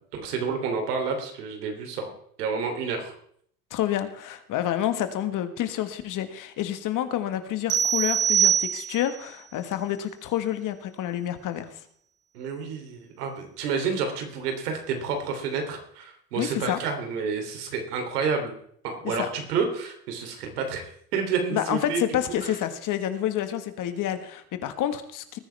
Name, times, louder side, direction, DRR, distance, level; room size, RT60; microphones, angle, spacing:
voice 1, 0.1-2.1 2.4-3.1 12.3-18.5 18.8-22.0, right 5 dB, 85° right, 4 dB, 3.3 m, -29 dB
voice 2, 3.7-11.8 16.3-16.8 19.0-19.3 21.5-25.4, left 11 dB, 40° left, 9 dB, 1.6 m, -29 dB
sound 1, 7.7-9.2, right 8 dB, 30° right, 2.1 m, -23 dB
19.5 x 9.9 x 3.5 m, 0.65 s
supercardioid pair, 115°, 46 cm